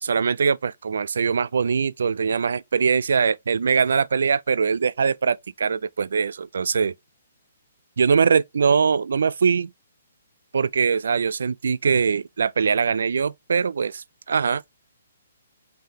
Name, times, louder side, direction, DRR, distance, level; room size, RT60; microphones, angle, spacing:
voice 1, 0.0-6.9 8.0-9.7 10.5-14.6, right 6 dB, 70° right, 0.3 m, -22 dB
3.8 x 3.3 x 2.8 m
hypercardioid pair, 180°, 0 cm